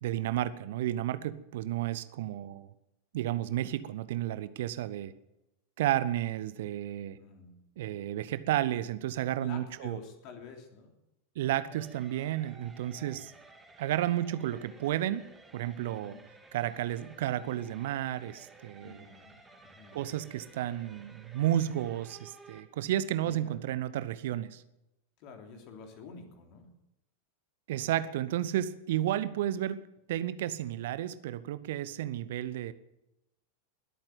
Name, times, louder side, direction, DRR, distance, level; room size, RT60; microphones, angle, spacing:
voice 1, 0.0-2.7 3.1-5.1 5.8-7.2 7.8-10.0 11.4-13.3 13.8-16.2 16.5-19.1 19.9-24.6 27.7-32.7, right 12 dB, 55° right, 16 dB, 0.7 m, -32 dB
voice 2, 7.2-7.6 9.4-10.9 12.9-13.2 15.9-16.2 18.8-19.4 19.6-20.0 23.2-23.6 25.2-26.7, left 5 dB, 40° left, 3 dB, 3.3 m, -49 dB
sound 1, 11.7-22.6, right 3 dB, 10° right, 2.7 m, -55 dB
20.5 x 8.8 x 7.8 m, 0.91 s
figure-of-eight pair, 90°, 0 cm